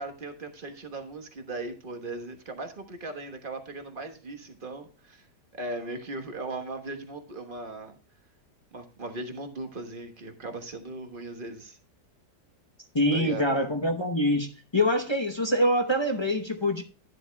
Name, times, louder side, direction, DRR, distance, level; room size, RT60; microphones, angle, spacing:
voice 1, 0.0-5.2 5.5-8.0 8.7-11.8 13.1-13.5, right 2 dB, 35° right, 5 dB, 1.3 m, -38 dB
voice 2, 12.9-14.5 14.7-16.8, left 1 dB, 25° left, 3 dB, 0.6 m, -25 dB
11.5 x 10.0 x 2.2 m, 0.37 s
omnidirectional pair, 1.8 m